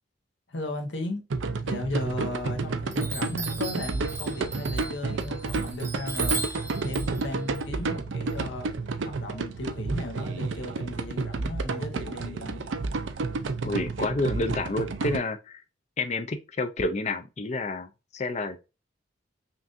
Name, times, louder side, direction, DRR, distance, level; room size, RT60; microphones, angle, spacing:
voice 1, 0.5-6.5 6.8-8.7 9.0-12.7, left 2 dB, 75° left, 1.0 m, -36 dB
sound 1, 1.3-15.2, right 3 dB, 80° right, 0.5 m, -31 dB
Chime, 1.9-2.5 2.9-8.8, right 4 dB, 15° right, 0.5 m, -37 dB
voice 2, 13.6-15.6 16.0-18.6, left 2 dB, 35° left, 0.4 m, -29 dB
5.8 x 2.5 x 2.5 m
head